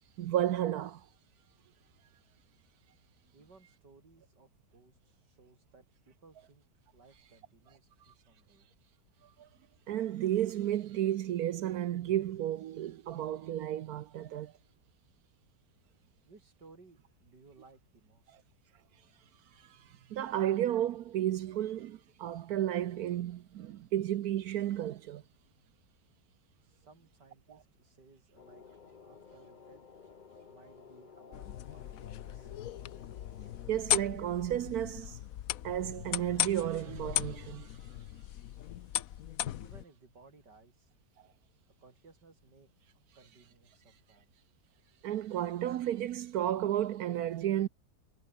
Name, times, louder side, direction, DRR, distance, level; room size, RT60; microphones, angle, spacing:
voice 1, 0.2-1.1 9.4-9.5 9.9-14.5 19.6-25.2 33.7-35.2 35.6-37.8 45.0-47.7, right 12 dB, 70° right, 1.1 m, -32 dB
voice 2, 3.3-6.7 6.9-8.7 16.2-18.5 26.6-32.5 39.6-40.9 41.8-44.3, right 4 dB, 85° right, 4.5 m, -61 dB
sound 1, 28.4-33.7, left 6 dB, 35° left, 0.9 m, -54 dB
sound 2, 31.3-39.8, left 12 dB, 65° left, 1.0 m, -37 dB
omnidirectional pair, 1.8 m